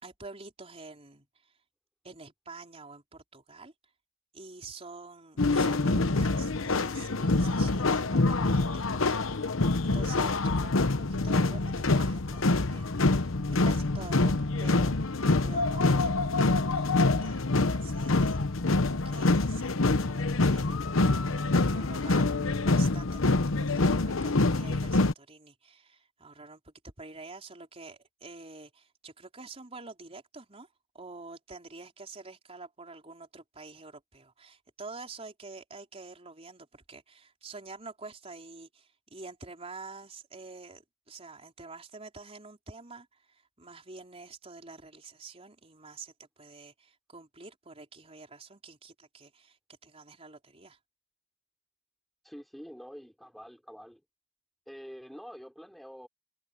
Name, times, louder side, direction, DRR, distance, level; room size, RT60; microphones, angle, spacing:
voice 1, 0.0-1.5 2.0-3.7 4.3-9.2 9.8-21.0 21.5-30.7 30.9-49.6 49.8-50.8, right 3 dB, 30° right, 4.1 m, -47 dB
sound 1, 5.4-25.1, left 2 dB, 85° left, 1.0 m, -26 dB
voice 2, 52.2-54.0 54.7-56.1, equal, ahead, 3.7 m, -46 dB
head